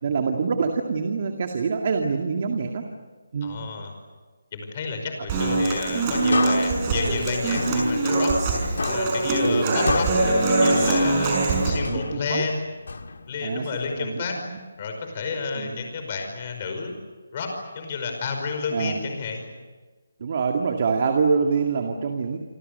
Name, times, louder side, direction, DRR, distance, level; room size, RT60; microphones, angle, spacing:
voice 1, 0.0-2.9 3.3-3.6 9.4-9.9 11.9-12.4 13.4-13.7 14.0-14.2 14.5-14.6 15.6-15.8 18.7-19.0 20.2-22.4, right 5 dB, 35° right, 4 dB, 2.2 m, -25 dB
voice 2, 3.4-3.9 4.5-8.3 8.9-11.4 11.6-12.7 13.3-14.4 14.8-16.9 17.3-19.5, left 4 dB, 25° left, 4 dB, 5.3 m, -31 dB
Human voice / Acoustic guitar, 5.3-11.7, right 2 dB, 20° right, 5.9 m, -22 dB
sound 1, 6.3-8.5 8.8-11.5 11.8-13.5, left 4 dB, 65° left, 1.8 m, -32 dB
27.5 x 25.5 x 6.9 m, 1.3 s
hypercardioid pair, 175°, 0 cm